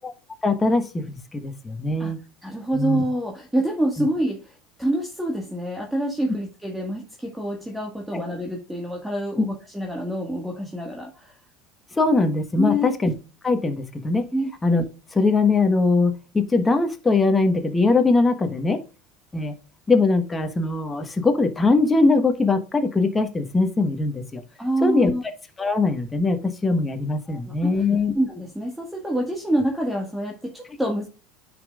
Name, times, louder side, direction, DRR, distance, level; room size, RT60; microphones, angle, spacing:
voice 1, 0.4-2.2 2.7-3.0 4.0-4.1 8.1-8.2 9.4-9.5 12.0-13.1 13.4-14.3 14.6-14.8 15.1-18.8 19.3-19.5 19.9-24.4 24.8-25.1 25.6-28.1, left 3 dB, 20° left, 7 dB, 1.3 m, -21 dB
voice 2, 2.4-11.3 12.6-12.9 14.3-14.5 24.6-25.2 27.3-27.8 28.1-31.1, right 1 dB, 5° right, 1 dB, 1.6 m, -26 dB
9.4 x 5.4 x 2.4 m, 0.32 s
hypercardioid pair, 90°, 0 cm